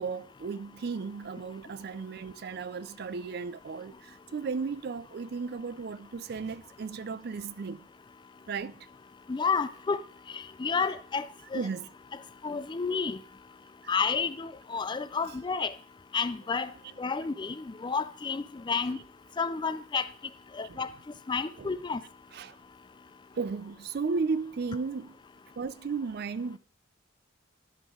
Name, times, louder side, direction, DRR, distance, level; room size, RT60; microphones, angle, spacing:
voice 1, 0.0-7.9 8.5-8.9 11.5-11.9 13.8-13.9 15.2-15.4 16.5-16.9 18.8-19.0 20.7-20.9 21.6-21.9 22.3-22.5 23.3-25.2 25.6-26.6, right 5 dB, 55° right, 0.4 m, -35 dB
voice 2, 9.3-10.0 10.3-11.3 11.5-11.7 12.4-13.2 13.9-15.7 16.1-16.7 17.0-19.0 19.4-20.1 20.6-20.9 21.3-22.0, left 5 dB, 25° left, 0.4 m, -30 dB
11.0 x 6.1 x 4.9 m
head